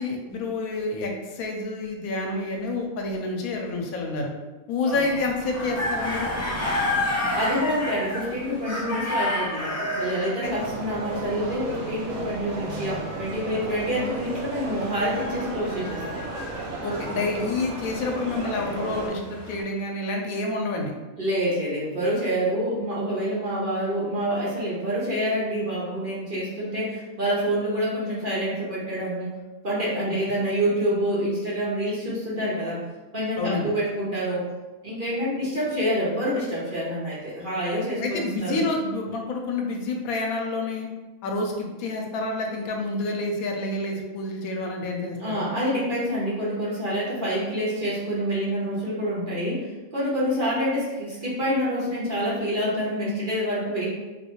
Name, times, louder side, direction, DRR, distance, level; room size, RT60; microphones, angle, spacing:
voice 1, 0.0-4.3 4.7-6.3 10.4-10.5 16.8-20.9 30.0-30.1 33.4-33.7 38.0-40.9 41.2-45.4, left 2 dB, 85° left, 2 dB, 1.0 m, -28 dB
sound 1, 4.9-10.5 14.7-16.7 17.5-19.6, left 1 dB, 20° left, 0.4 m, -30 dB
voice 2, 7.3-16.2 21.2-29.4 29.6-32.8 33.1-34.5 34.8-38.6 45.2-49.7 49.9-53.9, equal, 45° right, -7 dB, 0.8 m, -27 dB
sound 2, 10.4-19.1, right 2 dB, 70° right, 1.0 m, -34 dB
3.1 x 2.7 x 2.9 m, 1.2 s
omnidirectional pair, 1.5 m